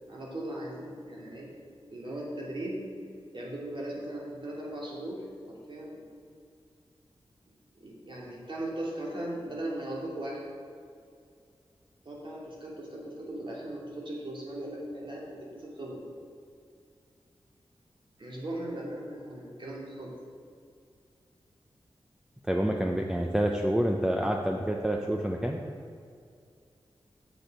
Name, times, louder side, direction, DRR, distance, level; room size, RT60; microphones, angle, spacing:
voice 1, 0.1-1.5 1.8-2.8 3.3-6.1 7.8-10.4 12.0-16.0 18.2-20.1, right 1 dB, 55° right, -4 dB, 2.5 m, -38 dB
voice 2, 22.5-25.6, right 1 dB, 5° right, 1 dB, 0.6 m, -28 dB
7.9 x 6.8 x 5.2 m, 2.3 s
cardioid pair, 60°, 10 cm